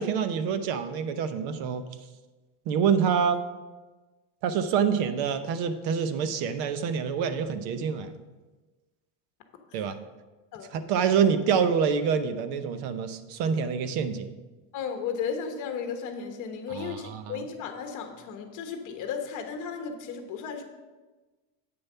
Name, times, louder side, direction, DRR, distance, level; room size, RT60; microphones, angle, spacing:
voice 1, 0.0-1.8 2.7-3.4 4.4-8.1 9.7-10.0 10.7-14.3 16.7-17.4, right 7 dB, 60° right, 10 dB, 0.9 m, -26 dB
voice 2, 14.7-20.6, left 6 dB, 40° left, 5 dB, 1.3 m, -34 dB
8.9 x 6.8 x 5.6 m, 1.2 s
cardioid pair, 175°, 45 cm